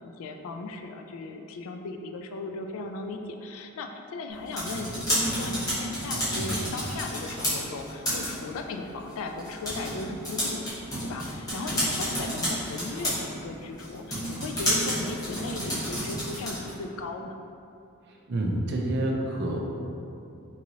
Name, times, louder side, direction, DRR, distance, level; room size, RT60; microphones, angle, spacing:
voice 1, 0.0-10.6 11.0-17.4, left 3 dB, 70° left, 6 dB, 0.3 m, -37 dB
sound 1, 4.3-16.8, equal, 15° left, 1.0 m, -31 dB
voice 2, 18.1-19.7, right 1 dB, 50° right, 0 dB, 0.4 m, -28 dB
3.8 x 3.0 x 2.6 m, 2.7 s
head